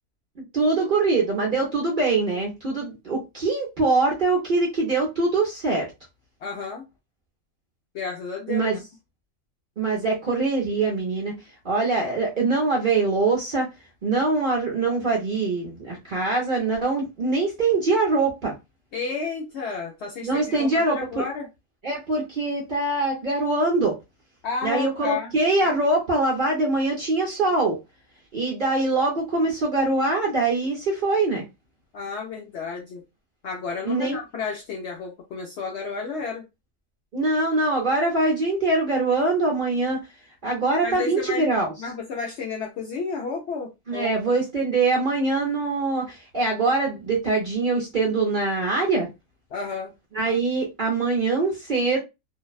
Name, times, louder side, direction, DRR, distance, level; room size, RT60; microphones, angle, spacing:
voice 1, 0.4-5.9 8.5-8.8 9.8-11.3 11.6-13.7 14.0-18.5 20.2-21.2 21.8-24.0 24.6-27.8 28.3-31.4 33.8-34.2 37.1-40.1 40.4-41.7 43.9-49.1 50.1-52.0, right 3 dB, 45° right, 0.7 m, -23 dB
voice 2, 6.4-6.8 7.9-8.7 18.9-21.5 24.4-25.3 31.9-33.0 33.4-36.4 40.8-41.5 41.8-44.2 49.5-49.9, left 5 dB, 65° left, 0.7 m, -32 dB
2.6 x 2.1 x 2.3 m
omnidirectional pair, 1.6 m